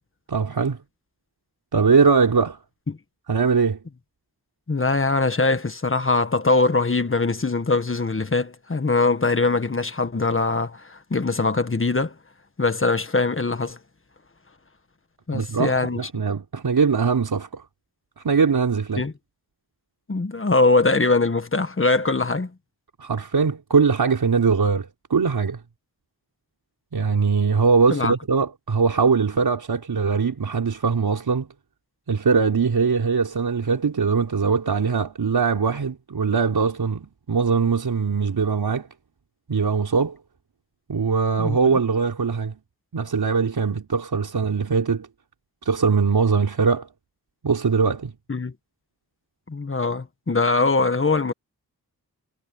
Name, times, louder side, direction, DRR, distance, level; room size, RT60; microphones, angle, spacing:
voice 1, 0.3-0.8 1.7-2.6 3.3-3.8 15.3-17.6 18.2-19.0 23.0-25.6 26.9-31.5 32.1-38.9 39.5-40.2 40.9-42.6 42.9-45.1 45.6-46.9 47.4-48.1, right 5 dB, 70° right, 4.3 m, -21 dB
voice 2, 4.7-12.1 12.6-13.8 15.3-16.0 19.0-19.1 20.1-22.5 27.9-28.1 41.4-41.6 48.3-48.5 49.5-51.3, left 3 dB, 35° left, 1.7 m, -22 dB
wide cardioid pair, 80°, 38 cm